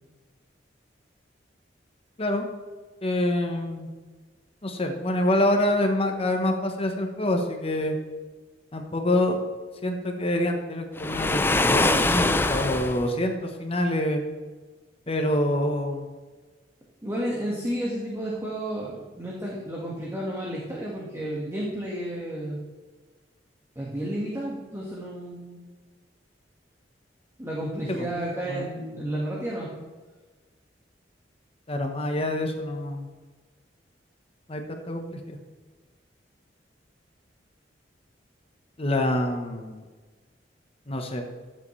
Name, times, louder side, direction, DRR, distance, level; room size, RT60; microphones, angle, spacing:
voice 1, 3.0-3.9 4.6-8.0 8.7-9.4 9.8-14.2 15.1-16.1 27.9-28.1 28.5-28.6 31.7-33.1 34.5-35.4 38.8-39.8 40.9-41.2, left 1 dB, 35° left, 4 dB, 1.0 m, -26 dB
Waves surf, 11.0-13.1, left 2 dB, 10° left, 0.4 m, -23 dB
voice 2, 17.0-22.6 23.7-25.6 27.4-29.7, right 1 dB, 15° right, -5 dB, 1.6 m, -32 dB
14.0 x 7.6 x 3.2 m, 1.3 s
head